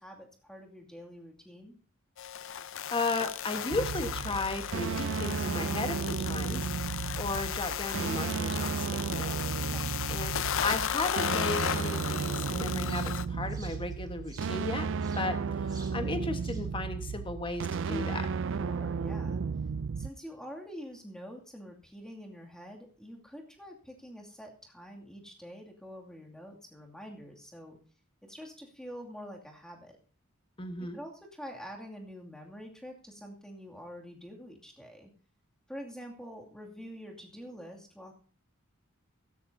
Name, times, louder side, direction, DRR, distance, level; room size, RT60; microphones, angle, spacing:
voice 1, 0.0-1.8 9.7-10.0 18.6-19.4 20.0-27.8 28.2-30.0 30.8-35.1 35.7-38.1, equal, 5° left, 0 dB, 2.4 m, -46 dB
sound 1, 2.2-13.2, left 9 dB, 65° left, 0.5 m, -35 dB
voice 2, 2.5-14.9 15.2-15.4 15.6-18.3 30.6-31.0, left 2 dB, 25° left, 7 dB, 1.4 m, -35 dB
sound 2, 3.7-20.1, right 5 dB, 60° right, 0.4 m, -34 dB
sound 3, 9.3-16.7, right 3 dB, 20° right, 2.5 m, -55 dB
16.0 x 13.0 x 2.7 m, 0.41 s
head